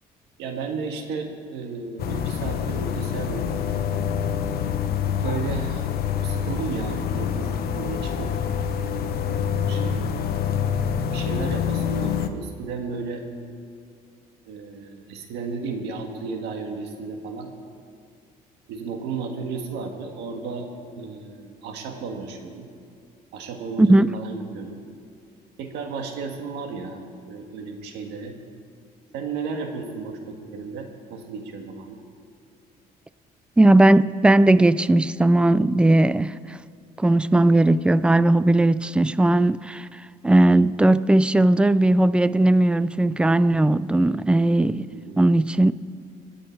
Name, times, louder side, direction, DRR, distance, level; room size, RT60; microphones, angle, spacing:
voice 1, 0.4-3.8 5.2-5.9 6.2-8.3 9.3-10.1 11.1-13.2 14.4-17.5 18.7-20.7 21.0-22.7 23.3-24.8 25.6-28.3 29.1-32.0 44.9-45.3, right 4 dB, 90° right, 1.8 m, -33 dB
sound 1, 2.0-12.3, left 8 dB, 65° left, 1.0 m, -26 dB
voice 2, 23.8-24.1 33.6-36.6 37.0-39.9 40.2-44.9 45.2-45.7, right 1 dB, 5° right, 0.3 m, -18 dB
24.5 x 8.8 x 4.6 m
cardioid pair, 110°, 17 cm